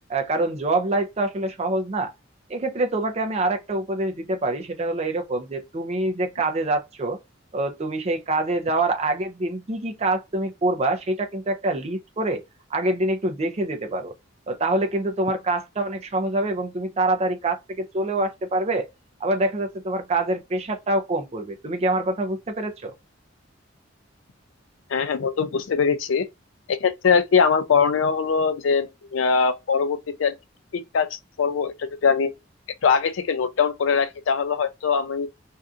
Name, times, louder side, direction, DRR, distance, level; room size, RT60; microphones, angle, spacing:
voice 1, 0.1-2.1 2.5-7.2 7.5-12.4 12.7-14.1 14.5-18.9 19.2-22.9, right 2 dB, 35° right, 0.5 m, -25 dB
voice 2, 24.9-26.3 26.7-30.3 30.7-32.3 32.8-35.3, left 5 dB, 80° left, 0.4 m, -22 dB
2.6 x 2.4 x 2.4 m
head